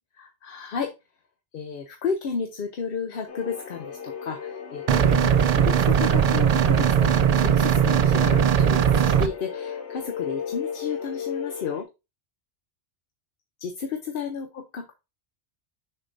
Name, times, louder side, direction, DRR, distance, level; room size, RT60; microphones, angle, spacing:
voice 1, 0.2-0.9 1.5-11.9 13.6-14.9, left 5 dB, 60° left, 5 dB, 0.8 m, -33 dB
sound 1, 3.3-11.8, left 7 dB, 80° left, 1.3 m, -35 dB
sound 2, 4.9-9.3, right 8 dB, 60° right, 0.4 m, -19 dB
6.7 x 5.4 x 2.6 m, 0.26 s
omnidirectional pair, 1.1 m